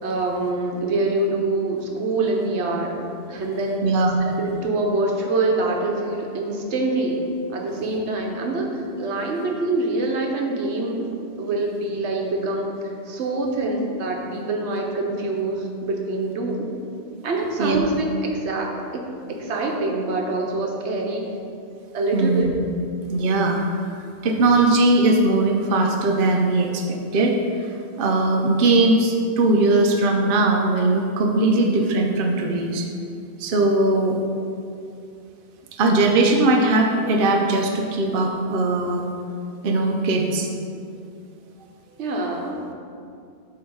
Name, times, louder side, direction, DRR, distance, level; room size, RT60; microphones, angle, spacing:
voice 1, 0.0-3.0 3.3-3.8 4.2-7.2 7.5-16.7 17.2-21.2 21.9-22.6 42.0-42.6, right 2 dB, 75° right, 1 dB, 1.1 m, -25 dB
voice 2, 3.8-4.2 17.6-17.8 22.1-22.5 23.1-32.9 33.4-34.2 35.8-39.1 39.6-40.5, right 2 dB, 55° right, 1 dB, 0.7 m, -20 dB
8.0 x 2.8 x 5.3 m, 2.5 s
omnidirectional pair, 1.2 m